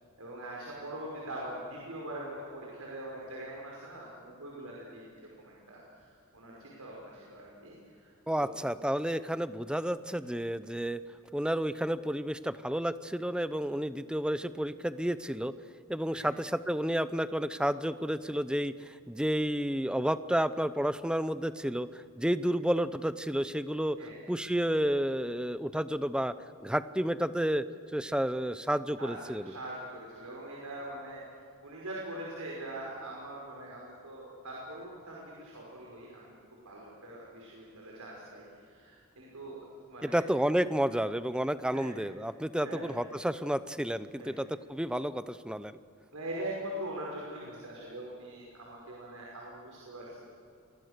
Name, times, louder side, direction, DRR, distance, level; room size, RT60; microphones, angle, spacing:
voice 1, 0.2-8.5 16.1-16.3 24.0-24.3 29.0-31.2 31.6-40.2 41.7-41.9 42.6-43.0 44.1-44.3 46.1-50.2, right 1 dB, 85° right, -3 dB, 5.6 m, -43 dB
voice 2, 8.3-11.0 11.3-15.5 15.9-24.0 24.3-26.3 26.6-27.7 27.9-29.4 40.0-45.8, equal, 5° right, 13 dB, 0.7 m, -31 dB
29.0 x 23.5 x 6.7 m, 2.5 s
head